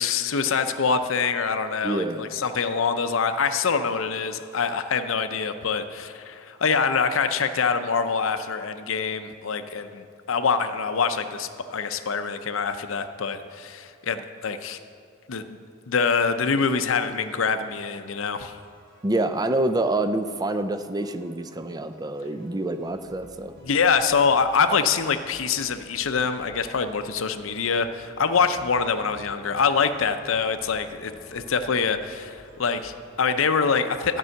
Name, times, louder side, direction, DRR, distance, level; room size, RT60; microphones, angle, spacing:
voice 1, 0.0-14.8 15.3-15.6 15.9-18.6 23.6-34.2, left 5 dB, 70° left, 9 dB, 0.6 m, -25 dB
voice 2, 1.8-2.2 19.0-23.5, right 2 dB, 20° right, 10 dB, 0.4 m, -26 dB
sound 1, 16.0-33.0, equal, 55° right, 2.6 m, -52 dB
12.5 x 5.5 x 7.7 m, 2.4 s
head